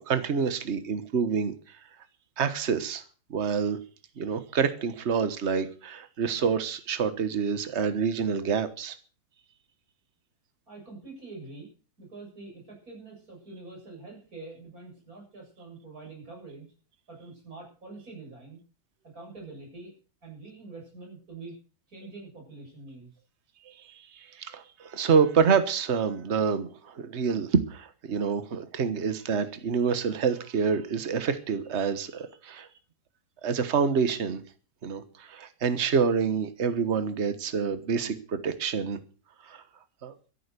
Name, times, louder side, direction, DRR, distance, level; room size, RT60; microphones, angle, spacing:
voice 1, 0.0-1.5 2.4-3.0 3.3-3.8 4.2-9.0 24.4-32.7 33.4-34.4 34.8-39.0 39.5-39.6 40.0-40.1, right 6 dB, 45° right, 11 dB, 1.5 m, -27 dB
voice 2, 10.7-11.7 12.0-16.7 17.1-18.6 19.1-19.9 20.2-21.6 21.9-23.1, right 3 dB, 65° right, 0 dB, 8.1 m, -45 dB
13.5 x 11.0 x 6.8 m, 0.39 s
omnidirectional pair, 1.7 m